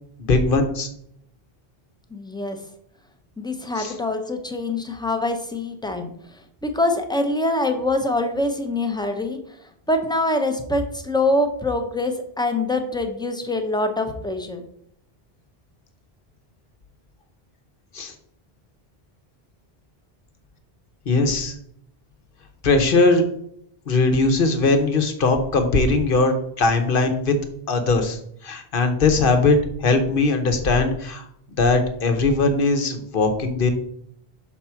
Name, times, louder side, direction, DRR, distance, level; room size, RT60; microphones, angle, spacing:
voice 1, 0.2-0.9 3.8-3.9 17.9-18.1 21.1-21.5 22.6-23.2 23.9-27.4 27.7-31.3 31.6-33.7, left 3 dB, 60° left, 7 dB, 1.1 m, -20 dB
voice 2, 2.1-2.6 3.4-6.1 6.6-9.4 9.9-14.6, left 2 dB, 5° left, 6 dB, 0.7 m, -24 dB
6.0 x 4.1 x 5.7 m, 0.70 s
omnidirectional pair, 1.0 m